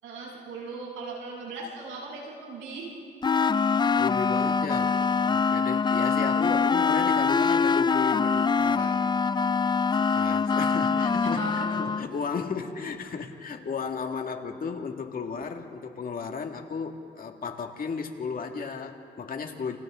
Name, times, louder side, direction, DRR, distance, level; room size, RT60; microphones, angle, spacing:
voice 1, 0.0-2.9 10.9-11.9, right 3 dB, 90° right, -4 dB, 7.1 m, -38 dB
sound 1, 3.2-12.1, left 5 dB, 20° left, 0.4 m, -24 dB
voice 2, 3.9-5.0 5.3-9.0 9.9-19.8, left 5 dB, 45° left, 3 dB, 2.1 m, -34 dB
29.5 x 28.0 x 3.8 m, 2.4 s
cardioid pair, 90°, 20 cm